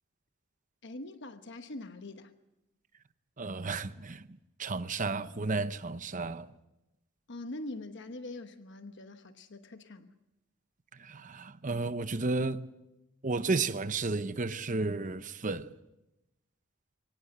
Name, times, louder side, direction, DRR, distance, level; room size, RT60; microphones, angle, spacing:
voice 1, 0.8-2.3 7.3-10.1, left 2 dB, 60° left, 1.1 m, -43 dB
voice 2, 3.4-4.3 4.6-6.5 10.9-12.6 13.2-15.7, right 3 dB, 40° right, 0.8 m, -32 dB
24.0 x 18.5 x 7.8 m
head